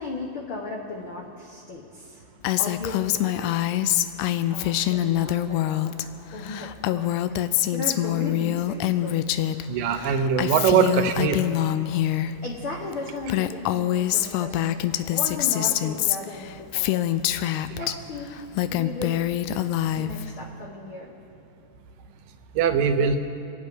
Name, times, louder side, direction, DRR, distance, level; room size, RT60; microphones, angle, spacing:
voice 1, 0.0-2.2 2.6-5.9 6.3-7.4 7.7-9.2 9.5-9.8 12.4-17.0 17.3-17.4 17.8-18.4 18.7-19.3 19.9-21.1, left 3 dB, 55° left, -2 dB, 1.6 m, -36 dB
Female speech woman speaking, 2.4-6.0 6.3-9.6 9.9-12.3 12.9-13.0 13.2-17.9 18.4-20.3, left 13 dB, 80° left, 1.8 m, -25 dB
voice 2, 9.7-11.4 17.8-17.9 22.6-23.2, right 7 dB, 85° right, 7 dB, 2.6 m, -21 dB
27.0 x 9.2 x 5.3 m, 2.9 s
omnidirectional pair, 3.9 m